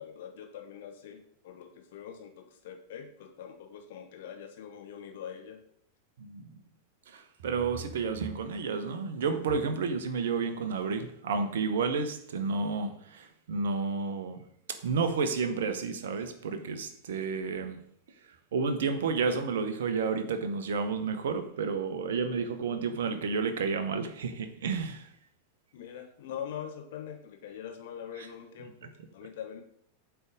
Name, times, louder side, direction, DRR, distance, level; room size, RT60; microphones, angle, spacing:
voice 1, 0.0-5.6 25.7-29.6, left 8 dB, 55° left, 4 dB, 1.0 m, -43 dB
voice 2, 7.1-14.4 14.8-17.8 18.5-25.1, right 5 dB, 60° right, 9 dB, 0.8 m, -31 dB
8.1 x 3.4 x 5.0 m, 0.69 s
figure-of-eight pair, 90°, 0 cm